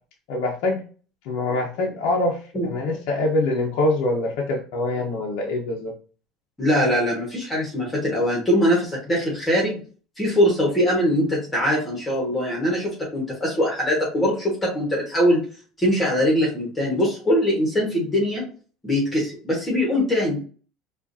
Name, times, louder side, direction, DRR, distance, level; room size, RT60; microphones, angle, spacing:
voice 1, 0.3-0.8 1.2-5.9, left 2 dB, 70° left, -2 dB, 0.8 m, -24 dB
voice 2, 6.6-9.8 10.2-15.4 15.8-18.4 18.8-20.4, equal, 15° left, -3 dB, 1.4 m, -22 dB
4.7 x 2.5 x 2.7 m, 0.39 s
cardioid pair, 135°, 0 cm